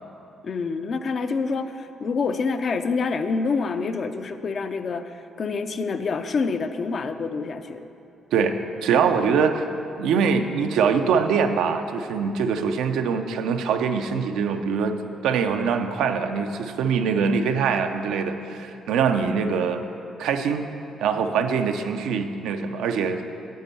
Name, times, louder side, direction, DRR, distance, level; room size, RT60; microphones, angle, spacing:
voice 1, 0.4-7.9, left 4 dB, 50° left, 9 dB, 0.5 m, -27 dB
voice 2, 8.8-9.7 10.0-15.0 15.2-19.8 20.2-20.7 21.0-23.2, right 6 dB, 85° right, 6 dB, 0.5 m, -23 dB
9.4 x 5.3 x 6.9 m, 2.7 s
cardioid pair, 90°, 0 cm